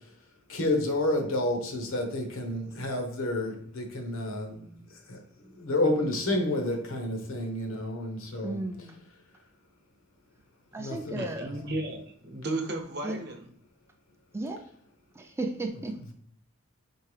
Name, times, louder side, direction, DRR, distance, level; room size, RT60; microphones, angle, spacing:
voice 1, 0.5-4.7 5.1-5.2 5.6-8.6 10.8-11.5, left 1 dB, 80° left, 1.0 m, -30 dB
voice 2, 8.4-9.1 10.7-11.5 13.0-13.2 14.3-14.6 15.2-16.0, right 2 dB, 10° right, 0.4 m, -34 dB
voice 3, 11.2-13.5, right 2 dB, 50° right, 0.8 m, -34 dB
4.4 x 3.7 x 3.3 m
head